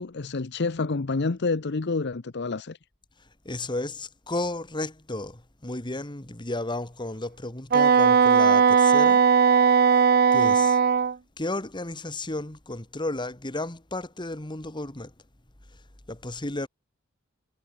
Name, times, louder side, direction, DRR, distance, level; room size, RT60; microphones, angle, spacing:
voice 1, 0.0-2.8, left 3 dB, 55° left, 0.8 m, -28 dB
voice 2, 3.5-9.2 10.3-10.8 11.4-15.1 16.1-16.7, left 2 dB, 25° left, 1.8 m, -33 dB
Wind instrument woodwind instrument, 7.7-11.1, right 6 dB, 50° right, 0.6 m, -18 dB
head